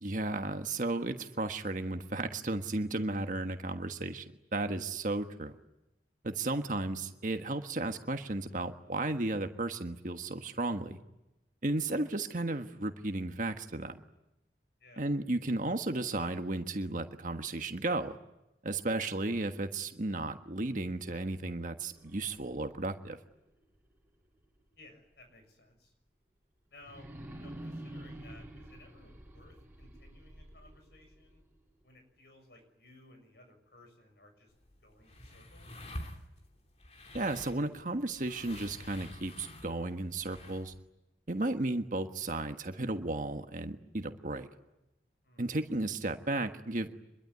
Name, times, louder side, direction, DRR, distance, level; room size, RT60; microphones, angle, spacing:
voice 1, 0.0-5.6 6.2-11.0 11.6-14.0 15.0-18.2 18.6-23.2 37.1-40.7 41.3-44.5 45.4-47.0, right 2 dB, 45° right, 7 dB, 1.4 m, -34 dB
sound 1, 21.9-24.9 25.3-25.4 26.8-31.8, right 1 dB, 10° right, 4.5 m, -49 dB
voice 2, 24.8-25.9 26.7-27.1 27.3-31.4 31.8-34.5 34.8-35.8 45.2-45.6, left 2 dB, 65° left, 5 dB, 6.9 m, -58 dB
sound 2, 34.5-40.8, left 1 dB, 35° left, 3.1 m, -48 dB
26.0 x 23.0 x 9.7 m, 0.94 s
head